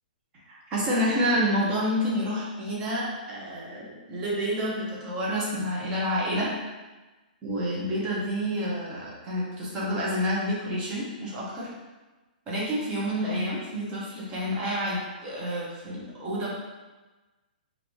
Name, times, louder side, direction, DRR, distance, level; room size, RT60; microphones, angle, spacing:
voice 1, 0.3-6.5 7.4-11.7 12.5-16.5, equal, 20° right, -6 dB, 0.9 m, -29 dB
3.1 x 2.6 x 3.0 m, 1.2 s
hypercardioid pair, 160°, 5 cm